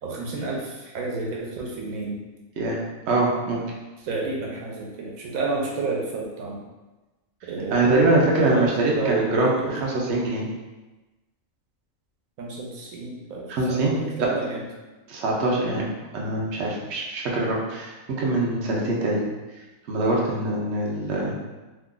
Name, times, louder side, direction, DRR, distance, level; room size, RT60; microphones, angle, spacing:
voice 1, 0.0-2.2 4.0-6.6 7.4-9.8 12.4-14.7, right 3 dB, 80° right, -2 dB, 1.1 m, -30 dB
voice 2, 3.1-3.6 7.7-9.5 9.8-10.4 13.5-13.9 14.2-14.3 15.1-15.8 16.1-19.2 19.9-21.3, right 2 dB, 60° right, -3 dB, 0.9 m, -23 dB
2.8 x 2.4 x 3.7 m, 1.1 s
omnidirectional pair, 1.4 m